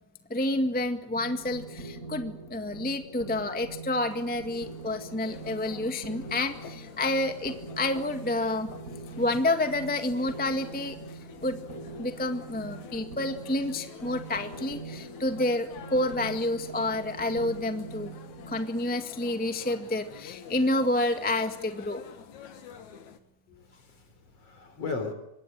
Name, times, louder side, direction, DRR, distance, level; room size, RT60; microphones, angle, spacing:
voice 1, 0.3-8.7 9.2-11.0 11.4-11.6 12.0-18.1 18.5-22.0, left 1 dB, 5° left, 1.1 m, -29 dB
sound 1, 1.2-18.6, right 3 dB, 25° right, 7.2 m, -43 dB
sound 2, 4.0-23.2, left 7 dB, 75° left, 3.2 m, -48 dB
voice 2, 23.5-25.1, left 4 dB, 55° left, 4.8 m, -37 dB
25.0 x 20.5 x 8.9 m
omnidirectional pair, 3.4 m